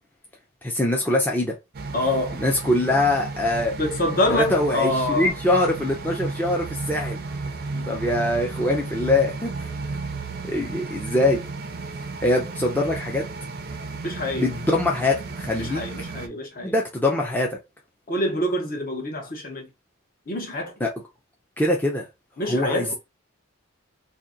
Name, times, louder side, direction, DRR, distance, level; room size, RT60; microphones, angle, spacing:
voice 1, 0.6-1.5 2.4-3.7 4.3-7.2 7.9-9.7 10.4-11.4 12.2-13.3 14.4-15.8 16.2-17.5 20.8-20.9 21.6-22.1 22.5-22.9, left 1 dB, 10° left, 0.5 m, -23 dB
sound 1, 1.7-16.3, right 3 dB, 45° right, 0.5 m, -33 dB
voice 2, 1.9-2.4 3.8-5.3 7.7-8.0 14.0-14.5 15.6-16.7 18.1-19.7 20.3-20.7 22.4-23.0, left 1 dB, 40° left, 0.9 m, -26 dB
2.8 x 2.6 x 3.7 m
head